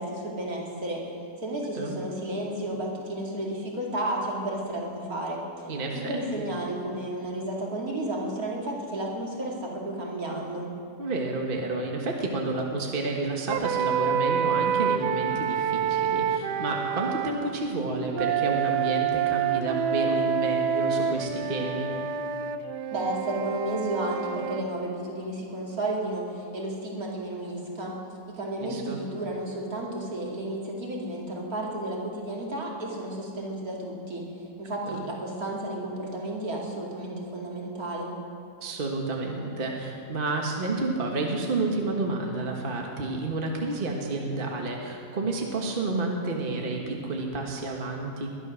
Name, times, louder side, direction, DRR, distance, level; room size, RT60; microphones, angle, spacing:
voice 1, 0.0-10.7 22.9-28.0 28.3-34.3 34.6-38.1, right 1 dB, 60° right, -2 dB, 3.0 m, -32 dB
voice 2, 5.7-6.4 11.0-21.9 28.6-29.0 34.9-35.0 38.6-48.3, right 2 dB, 35° right, 1 dB, 1.5 m, -30 dB
sound 1, 13.5-17.3 18.1-24.6, right 7 dB, 85° right, 1.3 m, -27 dB
21.0 x 11.0 x 6.2 m, 2.6 s
omnidirectional pair, 1.7 m